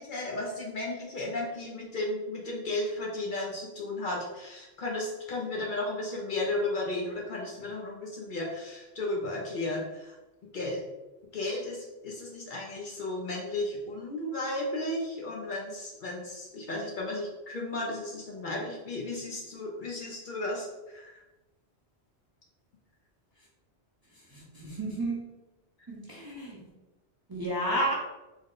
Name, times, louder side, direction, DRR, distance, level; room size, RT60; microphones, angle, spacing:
voice 1, 0.0-10.1 10.5-10.8 11.3-21.2, left 2 dB, 55° left, -2 dB, 0.7 m, -34 dB
voice 2, 24.3-25.3 25.9-26.6 27.3-27.9, right 1 dB, 25° right, -6 dB, 0.6 m, -31 dB
3.6 x 2.1 x 3.7 m, 1.1 s
omnidirectional pair, 1.1 m